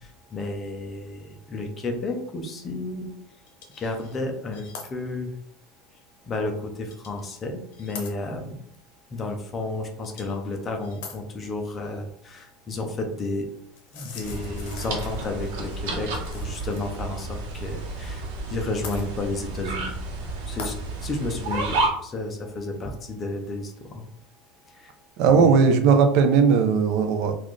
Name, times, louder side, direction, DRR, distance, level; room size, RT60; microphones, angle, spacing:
voice 1, 0.0-3.1 3.8-5.3 6.3-8.6 9.1-13.5 13.9-18.2 18.5-19.9 20.5-24.0 24.7-24.9 25.3-25.6, left 2 dB, 20° left, 4 dB, 0.5 m, -32 dB
sound 1, 3.5-4.2 4.5-4.9 5.4-5.5 6.9-7.3 7.7-8.1 10.0-10.4 10.8-11.2 13.8-16.8 17.1-17.2 18.8-19.1 20.6-20.8, left 5 dB, 65° left, 0.8 m, -42 dB
sound 2, 14.2-21.9, right 2 dB, 75° right, 1.0 m, -31 dB
voice 2, 25.2-27.3, right 5 dB, 50° right, 7 dB, 0.5 m, -18 dB
4.0 x 2.4 x 3.1 m, 0.68 s
supercardioid pair, 165°, 0 cm